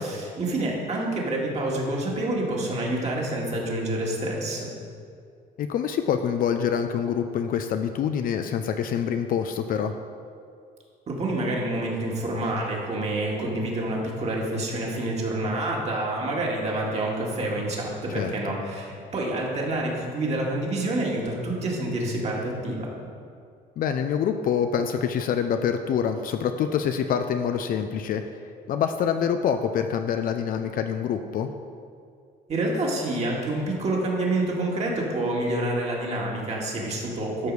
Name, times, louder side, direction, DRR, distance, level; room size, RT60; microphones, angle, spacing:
voice 1, 0.0-4.7 11.1-22.9 32.5-37.5, right 1 dB, 40° right, -2 dB, 2.0 m, -28 dB
voice 2, 5.6-9.9 18.1-18.3 23.8-28.2 28.7-31.5, left 8 dB, 55° left, 7 dB, 0.5 m, -26 dB
12.0 x 4.8 x 4.8 m, 2.3 s
cardioid pair, 110°, 17 cm